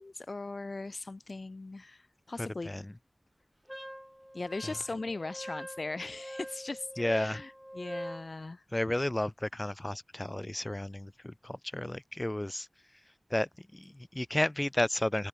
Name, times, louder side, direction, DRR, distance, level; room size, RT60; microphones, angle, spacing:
voice 1, 0.0-2.7 4.3-8.6 8.9-9.0, left 3 dB, 65° left, 0.8 m, -39 dB
voice 2, 2.4-2.9 4.6-4.7 7.0-7.4 8.7-12.7 13.3-15.3, left 1 dB, 25° left, 0.3 m, -32 dB
Wind instrument woodwind instrument, 3.7-8.3, equal, ahead, 1.0 m, -44 dB
open air
wide cardioid pair, 45°, 0 cm